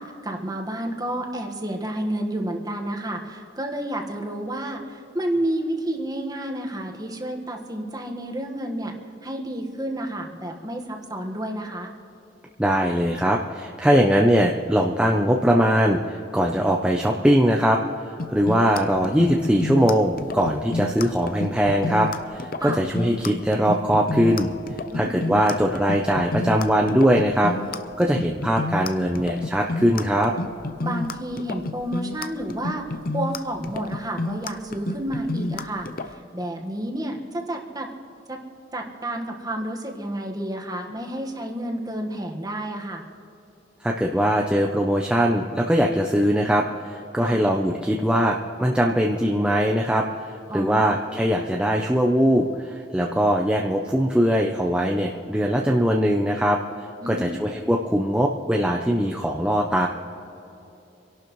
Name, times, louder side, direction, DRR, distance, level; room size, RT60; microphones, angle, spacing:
voice 1, 0.2-8.9 9.2-11.9 22.6-22.8 24.9-25.3 30.8-32.8 33.1-37.9 38.3-38.4 38.7-43.0 47.2-47.4 50.5-50.9 57.0-57.4, right 1 dB, 20° right, 2 dB, 1.5 m, -30 dB
voice 2, 12.6-17.8 18.3-24.5 24.9-27.5 28.0-30.3 43.8-50.3 50.5-56.6 57.1-59.9, equal, 5° right, 0 dB, 0.6 m, -21 dB
sound 1, 18.2-36.1, left 2 dB, 50° left, 0.6 m, -30 dB
27.0 x 12.0 x 3.2 m, 2.9 s
head